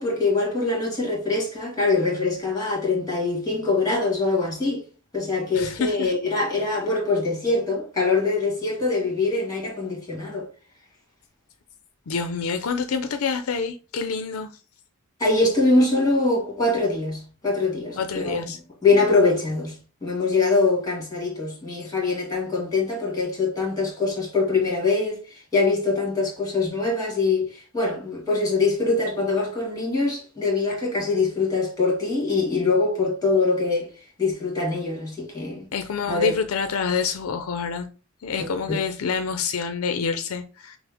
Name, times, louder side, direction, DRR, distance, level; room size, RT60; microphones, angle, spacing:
voice 1, 0.0-4.8 5.1-10.5 15.2-18.5 18.8-19.8 20.0-33.9 34.2-35.7 36.1-36.3 38.7-38.8, left 3 dB, 15° left, 1.8 m, -23 dB
voice 2, 5.5-6.1 12.1-14.5 18.0-18.6 35.7-37.9 38.2-40.8, left 5 dB, 75° left, 0.5 m, -27 dB
5.9 x 2.0 x 3.5 m
head